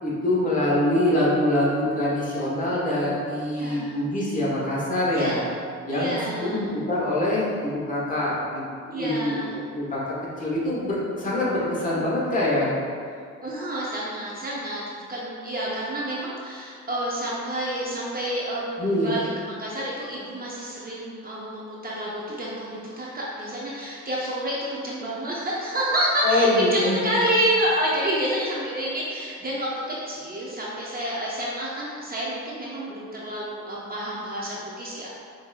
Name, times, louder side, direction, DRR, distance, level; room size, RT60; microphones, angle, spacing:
voice 1, 0.0-5.4 5.9-8.6 8.9-9.4 9.7-12.7 18.8-19.1 26.2-27.0, left 1 dB, 25° left, -7 dB, 1.2 m, -24 dB
voice 2, 3.5-4.0 5.1-5.4 5.9-6.7 8.9-9.5 13.4-29.7 30.1-35.1, right 1 dB, 30° right, -5 dB, 0.6 m, -29 dB
5.5 x 2.5 x 2.3 m, 2.3 s
cardioid pair, 90°, 30 cm